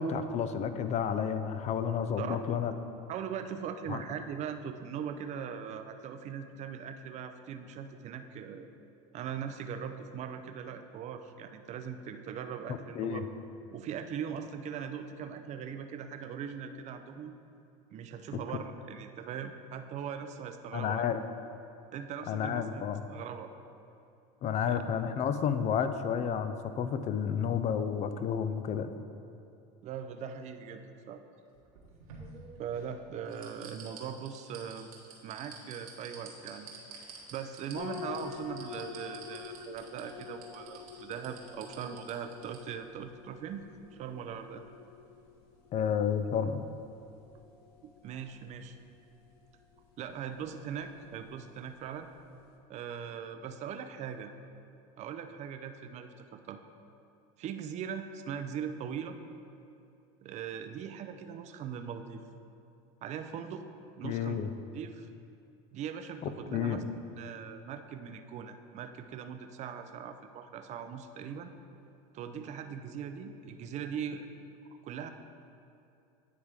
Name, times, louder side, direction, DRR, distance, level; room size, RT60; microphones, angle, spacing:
voice 1, 0.0-2.7 3.9-4.0 13.0-13.2 20.7-21.2 22.3-23.0 24.4-28.9 45.7-46.6 64.0-64.5 66.5-66.8, left 7 dB, 40° left, 10 dB, 0.4 m, -31 dB
voice 2, 3.1-8.7 9.1-13.3 13.7-17.4 17.9-21.1 21.9-22.8 23.1-23.5 24.7-24.8 29.8-31.2 32.6-34.9 35.2-36.9 37.3-43.7 43.9-44.6 47.8-48.8 50.0-52.1 52.7-54.3 55.0-56.6 57.4-59.2 60.2-62.2 63.0-63.6 64.0-64.4 64.7-65.1 65.7-66.8 67.1-71.5 72.1-74.3 74.8-75.1, right 7 dB, 40° right, 7 dB, 0.5 m, -40 dB
sound 1, 31.5-32.9 33.3-42.6 42.9-43.0, right 6 dB, 90° right, 1.3 m, -49 dB
sound 2, 37.7-52.6, left 7 dB, 60° left, 0.9 m, -48 dB
9.4 x 3.4 x 4.8 m, 2.6 s
supercardioid pair, 105°, 18 cm